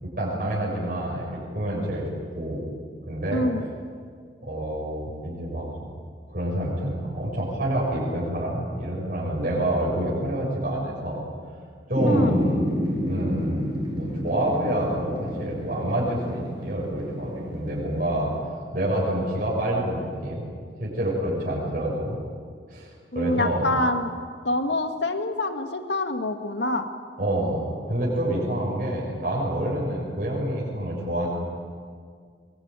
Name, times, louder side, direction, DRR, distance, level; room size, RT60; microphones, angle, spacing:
voice 1, 0.0-2.1 2.3-2.6 3.1-3.4 4.4-5.7 6.3-11.2 11.9-12.6 13.1-18.3 18.7-20.4 20.8-22.2 22.7-23.7 27.2-31.3, right 1 dB, 45° right, -4 dB, 6.6 m, -27 dB
voice 2, 3.3-3.6 12.1-12.3 23.1-24.1 24.4-26.9, left 1 dB, 70° left, 6 dB, 2.1 m, -26 dB
sound 1, 12.0-18.4, equal, 25° right, 4.2 m, -30 dB
23.0 x 22.5 x 9.2 m, 2.1 s
head